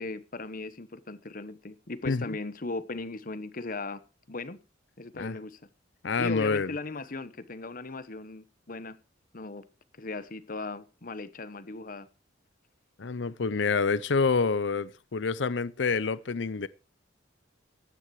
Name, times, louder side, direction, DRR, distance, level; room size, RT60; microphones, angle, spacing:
voice 1, 0.0-4.0 4.3-4.6 5.0-5.6 6.2-9.0 9.3-9.6 10.0-12.1, left 3 dB, 45° left, 1.1 m, -37 dB
voice 2, 2.1-2.4 5.1-5.4 6.0-6.8 13.0-16.7, left 4 dB, 65° left, 0.6 m, -27 dB
15.0 x 9.8 x 4.8 m
head